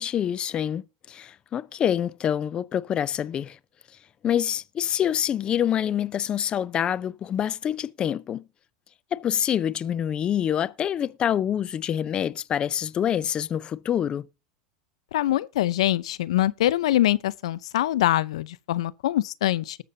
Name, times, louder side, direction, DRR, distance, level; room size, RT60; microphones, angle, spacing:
voice 1, 0.0-3.6 4.2-8.4 9.1-14.3, left 9 dB, 30° left, 0.4 m, -26 dB
voice 2, 15.1-19.8, left 14 dB, 80° left, 0.5 m, -24 dB
19.0 x 6.8 x 2.7 m
supercardioid pair, 115°, 3 cm